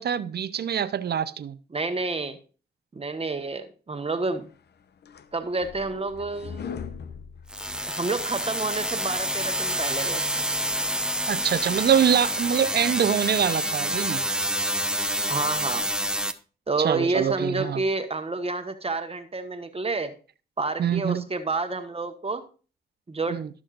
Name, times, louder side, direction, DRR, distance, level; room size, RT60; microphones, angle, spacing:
voice 1, 0.0-1.6 11.3-14.2 16.8-17.8 20.8-21.3 23.3-23.5, right 8 dB, 65° right, 0.7 m, -24 dB
voice 2, 1.7-2.4 2.9-4.5 5.3-6.8 7.8-10.2 15.3-15.9 16.7-20.1 20.6-22.4 23.1-23.4, right 3 dB, 35° right, 1.2 m, -29 dB
sound 1, 4.6-8.2, left 6 dB, 70° left, 0.7 m, -40 dB
sound 2, 7.5-16.3, right 1 dB, 5° right, 0.9 m, -28 dB
15.5 x 6.3 x 2.5 m
cardioid pair, 65°, 18 cm